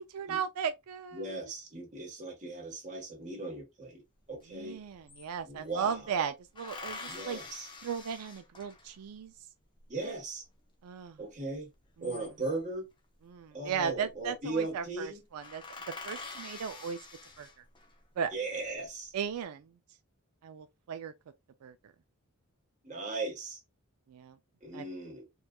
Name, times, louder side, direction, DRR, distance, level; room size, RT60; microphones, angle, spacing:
voice 1, 0.0-1.3 4.5-7.4 7.8-9.3 10.8-11.2 13.3-15.6 16.0-17.0 17.4-17.5 18.2-18.3 19.1-19.7 20.4-21.1 21.6-21.9 24.1-24.4 24.7-24.8, right 7 dB, 90° right, 0.4 m, -36 dB
voice 2, 1.1-4.8 5.4-6.2 7.1-7.7 9.9-10.5 11.2-11.7 12.0-12.9 13.5-15.2 18.3-19.1 22.8-23.6 24.6-25.3, right 2 dB, 35° right, 1.3 m, -38 dB
sound 1, 4.4-4.5 4.7-5.8 6.6-9.1 11.7-12.7 13.9-14.3 14.6-14.7 15.0-15.1 15.4-18.0 18.5-19.2, left 3 dB, 20° left, 0.6 m, -46 dB
4.3 x 2.3 x 2.2 m
head